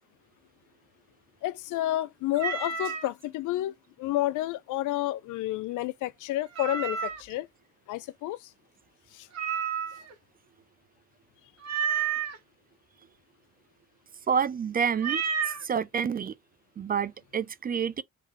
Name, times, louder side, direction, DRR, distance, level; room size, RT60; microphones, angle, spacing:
voice 1, 1.4-7.5 7.9-8.5 9.1-9.3, left 15 dB, 85° left, 0.5 m, -30 dB
Meow, 2.3-3.1 6.5-7.3 9.3-10.1 11.6-12.4 15.0-15.6, right 7 dB, 60° right, 1.3 m, -30 dB
voice 2, 14.3-15.2 15.6-16.3 16.8-18.0, right 7 dB, 30° right, 0.4 m, -28 dB
3.7 x 2.8 x 3.1 m
cardioid pair, 90°, 30 cm